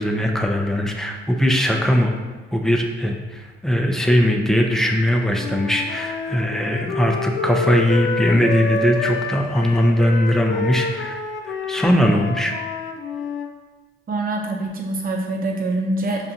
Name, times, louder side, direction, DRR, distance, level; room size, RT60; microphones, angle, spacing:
voice 1, 0.0-2.1 2.5-11.2 11.7-12.6, equal, ahead, 2 dB, 0.5 m, -20 dB
Wind instrument woodwind instrument, 5.3-13.5, left 5 dB, 75° left, 0.4 m, -28 dB
voice 2, 14.1-16.3, right 2 dB, 45° right, 1 dB, 0.7 m, -25 dB
5.5 x 2.5 x 2.7 m, 1.4 s
cardioid pair, 90°, 20 cm